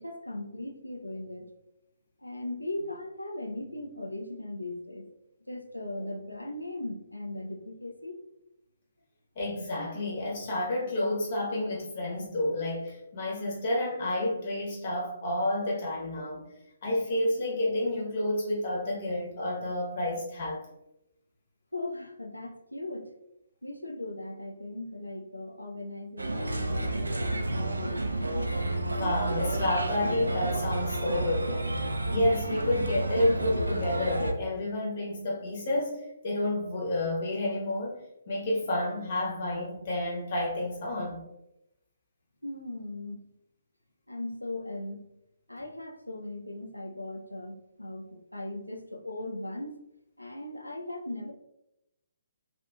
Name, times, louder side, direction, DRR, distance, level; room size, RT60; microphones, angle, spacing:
voice 1, 0.0-1.5 2.2-5.1 5.4-8.2 21.7-23.1 23.6-28.1 42.4-43.3 44.1-45.0 45.5-49.8 50.2-51.3, left 1 dB, 85° left, 3 dB, 0.3 m, -38 dB
voice 2, 9.4-16.5 16.8-20.7 28.8-31.7 32.1-41.2, left 1 dB, 40° left, -4 dB, 0.9 m, -30 dB
Bird, 26.2-34.3, right 2 dB, 75° right, 0.3 m, -30 dB
2.5 x 2.5 x 2.2 m, 0.87 s
figure-of-eight pair, 135°, 0 cm